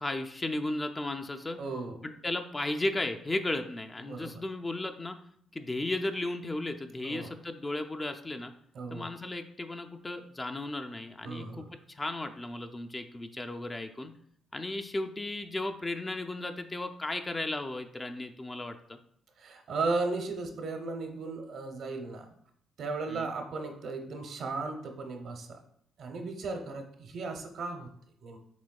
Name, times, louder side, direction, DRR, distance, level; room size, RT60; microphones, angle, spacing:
voice 1, 0.0-1.6 2.0-5.2 5.5-8.5 8.9-14.1 14.5-19.0 23.1-23.3, left 2 dB, 20° left, 6 dB, 0.4 m, -35 dB
voice 2, 1.6-2.0 4.0-4.4 7.0-7.3 8.7-9.1 11.2-11.7 19.4-22.3 22.8-25.6 26.0-27.9 28.2-28.4, right 3 dB, 65° right, 4 dB, 0.7 m, -35 dB
6.1 x 3.5 x 2.3 m, 0.67 s
cardioid pair, 90°, 0 cm